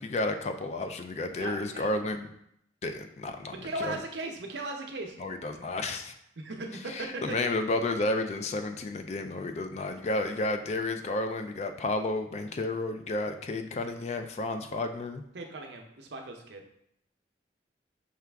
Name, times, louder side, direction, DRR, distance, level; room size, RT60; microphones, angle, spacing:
voice 1, 0.0-2.3 2.8-4.0 5.2-6.1 6.9-15.2, left 2 dB, 35° left, 7 dB, 0.3 m, -32 dB
voice 2, 1.4-2.0 3.5-5.2 6.4-7.4 15.3-16.6, right 2 dB, 75° right, 3 dB, 0.7 m, -38 dB
5.8 x 2.3 x 3.4 m, 0.74 s
head